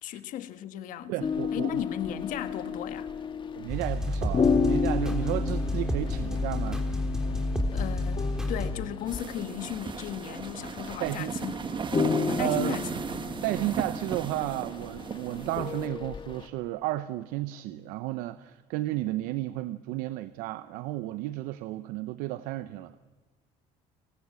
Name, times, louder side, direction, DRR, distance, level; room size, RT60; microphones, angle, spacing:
voice 1, 0.0-1.1 1.5-3.1 7.7-11.8 12.3-12.9, left 11 dB, 70° left, 1.5 m, -36 dB
voice 2, 1.1-1.8 3.6-6.9 11.0-11.3 12.4-12.8 13.4-22.9, right 16 dB, 80° right, 0.7 m, -33 dB
sound 1, 1.2-16.5, left 5 dB, 35° left, 1.9 m, -33 dB
sound 2, 3.7-8.7, left 1 dB, 5° right, 3.7 m, -29 dB
sound 3, 9.1-15.9, right 5 dB, 35° right, 1.4 m, -36 dB
30.0 x 19.0 x 7.5 m
supercardioid pair, 85°, 14 cm